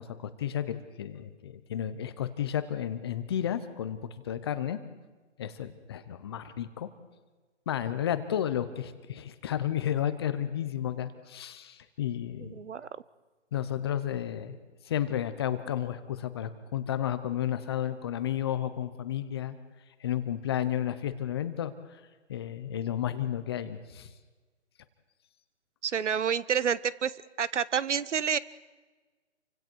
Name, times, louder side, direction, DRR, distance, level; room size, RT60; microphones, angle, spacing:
voice 1, 0.0-4.8 5.4-6.9 7.7-12.5 13.5-14.6 14.8-19.6 20.0-22.0 22.3-24.1, left 10 dB, 20° left, 12 dB, 0.8 m, -32 dB
voice 2, 12.4-12.9 25.8-27.1 27.4-28.4, right 7 dB, 75° right, 20 dB, 0.9 m, -28 dB
28.5 x 25.0 x 4.6 m, 1.3 s
hypercardioid pair, 155°, 36 cm